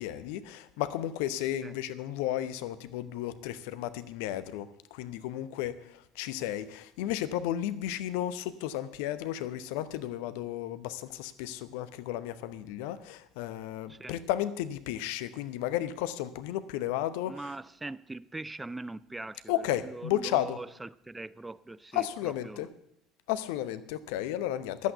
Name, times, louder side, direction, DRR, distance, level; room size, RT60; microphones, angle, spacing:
voice 1, 0.0-17.5 19.5-20.6 21.9-22.7 23.3-24.9, left 12 dB, 70° left, 14 dB, 0.8 m, -33 dB
voice 2, 17.3-19.5 19.8-22.7, right 2 dB, 15° right, 18 dB, 0.4 m, -41 dB
11.0 x 8.4 x 8.0 m, 0.76 s
hypercardioid pair, 65°, 0 cm